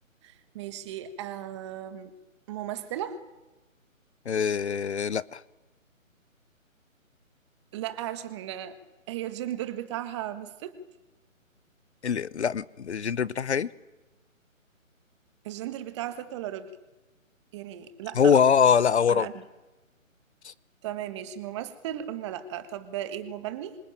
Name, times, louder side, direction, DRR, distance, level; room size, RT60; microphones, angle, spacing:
voice 1, 0.2-2.1 2.5-3.2 7.7-8.8 9.1-10.8 15.4-16.7 17.5-18.4 19.1-19.3 20.8-23.8, right 11 dB, 20° right, 11 dB, 1.7 m, -36 dB
voice 2, 4.3-5.4 12.0-13.7 18.2-19.3 20.4-20.5, left 7 dB, 55° left, 21 dB, 1.0 m, -23 dB
26.5 x 25.0 x 8.9 m, 1.1 s
figure-of-eight pair, 155°, 41 cm